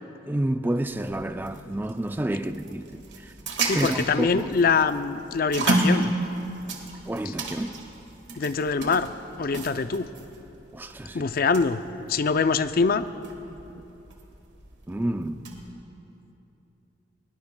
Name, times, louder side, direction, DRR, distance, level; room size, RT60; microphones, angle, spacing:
voice 1, 0.3-3.3 3.7-4.5 7.1-7.7 10.7-11.2 14.9-15.5, right 1 dB, 10° right, 0.4 m, -29 dB
sound 1, 0.8-15.7, right 2 dB, 65° right, 1.7 m, -33 dB
voice 2, 3.6-6.1 8.4-9.1 9.4-10.1 11.1-11.8 12.1-13.0, left 5 dB, 50° left, 0.4 m, -24 dB
21.0 x 19.5 x 2.2 m
head